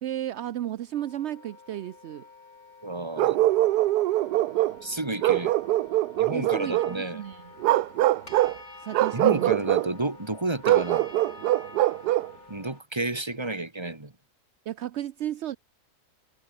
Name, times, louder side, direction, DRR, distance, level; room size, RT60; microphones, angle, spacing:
voice 1, 0.0-2.3 6.3-7.5 8.8-9.5 14.7-15.6, right 12 dB, 65° right, 0.7 m, -34 dB
Wind instrument woodwind instrument, 0.9-12.8, left 4 dB, 65° left, 3.4 m, -51 dB
voice 2, 2.8-3.4 4.8-5.5 6.2-7.2 9.1-11.1 12.5-14.1, right 2 dB, 15° right, 2.1 m, -31 dB
Bark, 3.2-4.8 5.2-7.0 7.6-8.6 8.9-9.9 10.6-12.3, right 15 dB, 85° right, 1.2 m, -23 dB
sound 1, 6.6-12.8, left 2 dB, 45° left, 5.0 m, -48 dB
omnidirectional pair, 1.7 m